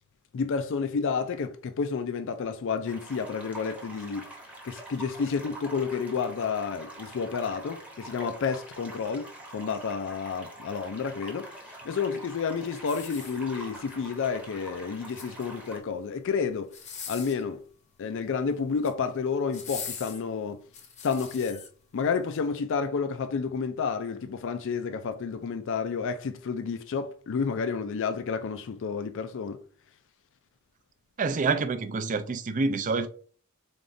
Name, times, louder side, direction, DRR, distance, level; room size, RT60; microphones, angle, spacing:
voice 1, 0.3-4.3 4.6-11.5 11.8-16.7 17.1-17.6 18.0-20.6 21.0-21.6 21.9-29.6, left 5 dB, 60° left, 0.4 m, -30 dB
sound 1, 2.8-15.8, right 1 dB, 5° right, 0.8 m, -45 dB
sound 2, 12.9-13.8 14.9-15.7 16.6-17.5 18.6-19.0 19.5-21.7 22.3-22.4, left 6 dB, 35° left, 0.7 m, -42 dB
voice 2, 31.2-33.1, right 4 dB, 35° right, 0.4 m, -27 dB
3.9 x 3.5 x 2.6 m
head